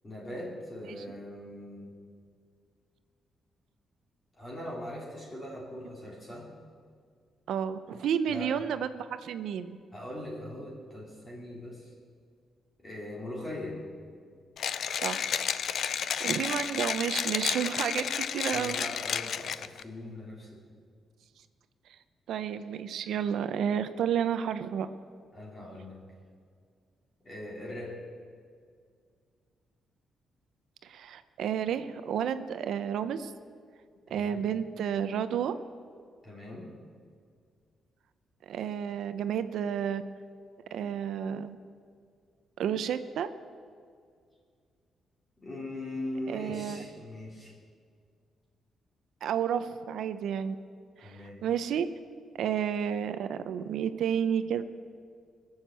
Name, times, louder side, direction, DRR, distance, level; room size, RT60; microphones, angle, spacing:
voice 1, 0.0-1.9 4.4-6.5 8.3-8.7 9.9-11.9 12.8-13.9 18.5-20.6 25.3-26.0 27.2-28.1 34.1-34.5 36.2-36.7 45.4-47.6 51.0-51.4, left 1 dB, 25° left, -4 dB, 2.8 m, -40 dB
voice 2, 7.5-9.8 14.9-15.3 15.7-18.8 22.3-24.9 30.8-33.3 34.1-35.5 38.5-40.0 40.7-41.6 42.6-43.3 46.3-46.8 49.2-50.6 51.0-51.9 52.4-54.6, right 8 dB, 75° right, 11 dB, 0.6 m, -31 dB
Mechanisms, 14.6-19.8, left 8 dB, 55° left, 0.5 m, -31 dB
21.5 x 7.3 x 7.5 m, 2.2 s
cardioid pair, 150°, 0 cm